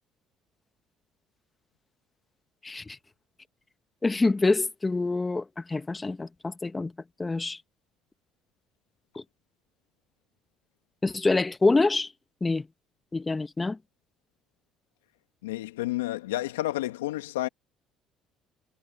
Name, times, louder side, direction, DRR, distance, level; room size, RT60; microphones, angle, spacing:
voice 1, 2.6-3.0 4.0-6.9 7.2-7.6 9.1-9.2 11.0-12.1 12.4-12.6 13.1-13.8, left 3 dB, 20° left, 1.4 m, -26 dB
voice 2, 15.4-17.5, left 16 dB, 90° left, 2.0 m, -30 dB
hypercardioid pair, 60°, 0 cm